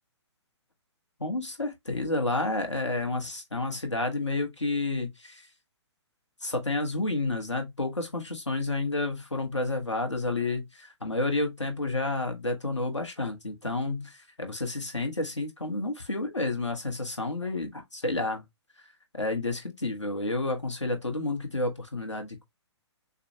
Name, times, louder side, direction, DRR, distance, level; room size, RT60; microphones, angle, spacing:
voice 1, 1.2-5.5 6.4-18.4 19.1-22.5, left 2 dB, 80° left, 1.3 m, -30 dB
6.5 x 2.2 x 2.7 m
figure-of-eight pair, 125°, 15 cm